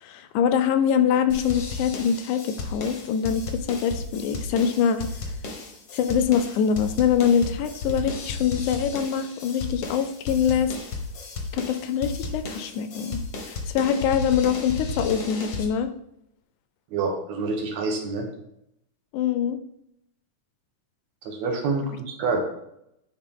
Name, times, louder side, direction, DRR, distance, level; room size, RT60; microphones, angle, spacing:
voice 1, 0.0-5.1 5.9-10.7 11.5-13.2 13.5-15.9 19.1-19.6, left 8 dB, 80° left, 10 dB, 1.9 m, -24 dB
sound 1, 1.3-15.7, left 3 dB, 60° left, 1.2 m, -34 dB
voice 2, 16.9-18.3 21.3-22.4, right 4 dB, 65° right, 2 dB, 2.3 m, -27 dB
10.0 x 4.3 x 3.7 m, 0.78 s
omnidirectional pair, 3.6 m